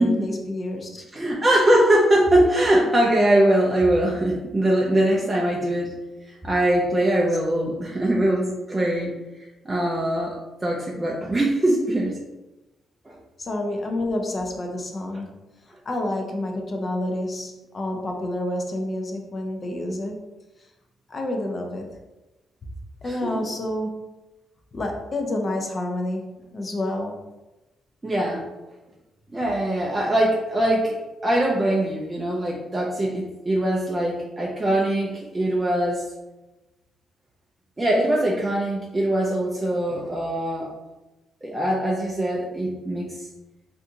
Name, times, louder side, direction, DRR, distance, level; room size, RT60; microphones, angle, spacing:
voice 1, 0.0-1.0 13.4-20.2 21.1-21.9 23.0-24.0 24.7-27.2, left 1 dB, 30° left, 2 dB, 0.5 m, -29 dB
voice 2, 1.1-5.9 6.3-9.1 9.6-12.2 13.1-13.2 23.1-23.4 28.0-28.5 29.3-31.0 31.2-36.0 37.8-40.7 41.4-43.3, right 1 dB, 15° right, -3 dB, 0.4 m, -22 dB
3.4 x 2.5 x 2.7 m, 1.1 s
cardioid pair, 130°, 0 cm